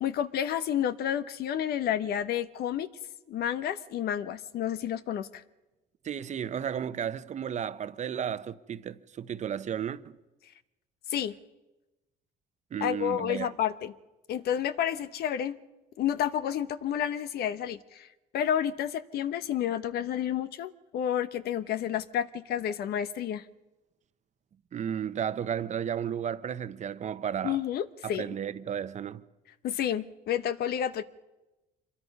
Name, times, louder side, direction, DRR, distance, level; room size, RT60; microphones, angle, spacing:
voice 1, 0.0-2.9 3.3-5.4 11.1-11.3 12.8-13.9 14.3-15.6 16.0-18.1 18.3-23.4 27.4-28.3 29.6-31.0, left 10 dB, 70° left, 1.1 m, -30 dB
voice 2, 6.0-10.0 12.7-13.5 24.7-27.6 28.0-29.2, right 8 dB, 45° right, 0.9 m, -33 dB
26.0 x 22.5 x 5.5 m
cardioid pair, 110°, 17 cm